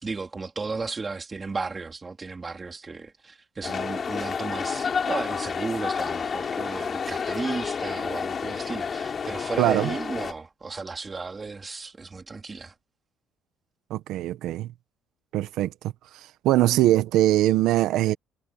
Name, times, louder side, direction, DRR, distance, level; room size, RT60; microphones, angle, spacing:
voice 1, 0.0-12.8, right 4 dB, 20° right, 3.6 m, -34 dB
sound 1, 3.6-10.3, left 6 dB, 35° left, 3.1 m, -30 dB
voice 2, 9.6-9.9 13.9-14.7 15.3-15.7 16.4-18.1, right 14 dB, 70° right, 1.3 m, -21 dB
cardioid pair, 135°, 0 cm